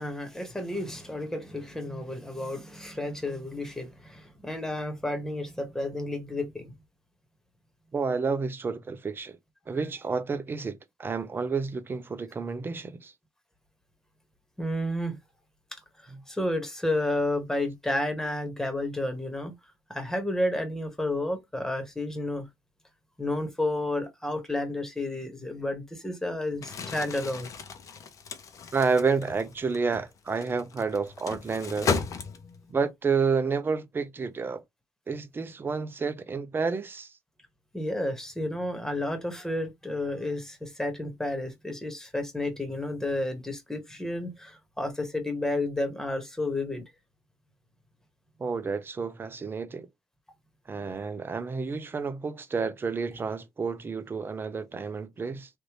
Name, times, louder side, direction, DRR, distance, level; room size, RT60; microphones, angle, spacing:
voice 1, 0.0-6.7 14.6-15.2 15.7-19.5 19.9-22.5 23.2-27.5 37.7-46.8, left 1 dB, 5° left, 1.5 m, -31 dB
voice 2, 7.9-9.4 9.7-13.1 28.7-32.0 32.7-34.6 35.1-37.1 48.4-49.9 50.7-55.5, right 5 dB, 35° right, 0.7 m, -30 dB
Crumpling crinkling, 26.5-32.7, left 5 dB, 55° left, 0.9 m, -35 dB
3.4 x 2.6 x 3.1 m
cardioid pair, 85°, 7 cm